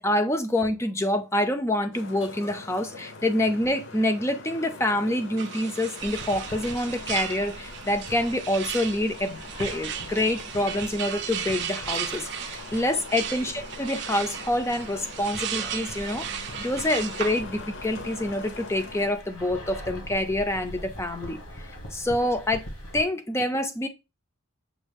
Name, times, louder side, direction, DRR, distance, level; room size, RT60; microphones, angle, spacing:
voice 1, 0.0-13.5 13.8-22.7 22.9-23.9, left 1 dB, 10° left, 0.4 m, -27 dB
Traffic noise roadway noise, 1.9-19.1, left 3 dB, 55° left, 0.7 m, -43 dB
sound 1, 5.4-17.4, right 9 dB, 55° right, 0.5 m, -36 dB
sound 2, 6.0-23.0, equal, 75° left, 1.3 m, -43 dB
6.1 x 2.4 x 3.4 m
head